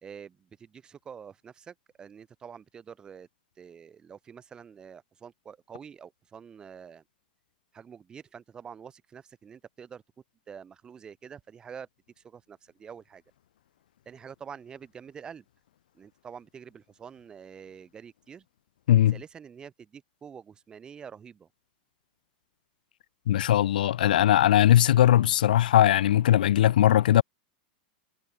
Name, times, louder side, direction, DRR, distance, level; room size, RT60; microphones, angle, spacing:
voice 1, 0.0-3.3 3.6-7.0 7.7-10.0 10.5-11.9 12.2-13.2 14.1-15.4 15.9-18.4 19.1-21.5, right 7 dB, 15° right, 4.0 m, -46 dB
voice 2, 23.3-27.2, left 12 dB, 90° left, 0.5 m, -20 dB
supercardioid pair, 150°, 5 cm